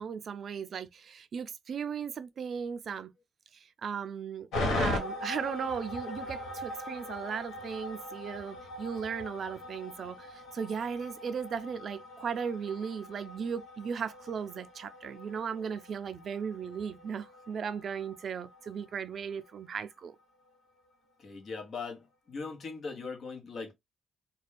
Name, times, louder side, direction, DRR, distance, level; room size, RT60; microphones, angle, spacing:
voice 1, 0.0-3.1 3.5-4.5 4.8-20.2, right 6 dB, 55° right, 0.4 m, -37 dB
sound 1, 4.5-18.9 19.1-19.2, left 1 dB, 80° left, 1.3 m, -40 dB
voice 2, 21.2-23.7, left 4 dB, 55° left, 1.0 m, -40 dB
2.6 x 2.2 x 3.3 m
cardioid pair, 90°, 0 cm